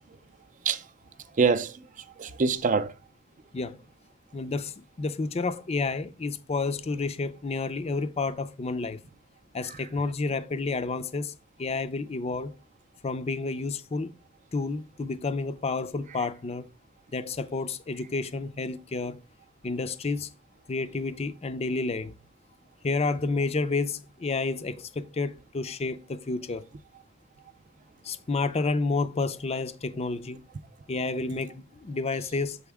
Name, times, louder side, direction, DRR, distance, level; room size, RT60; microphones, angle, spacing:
voice 1, 1.3-2.9 9.6-9.9 16.1-16.2 31.1-31.2, right 5 dB, 40° right, 0.4 m, -26 dB
voice 2, 4.3-9.0 9.5-11.3 11.6-12.5 13.0-14.1 14.5-16.7 17.1-19.2 19.6-20.3 20.7-22.2 22.8-26.7 28.0-30.4 30.9-32.6, left 3 dB, 30° left, 0.5 m, -30 dB
7.0 x 4.1 x 3.5 m
head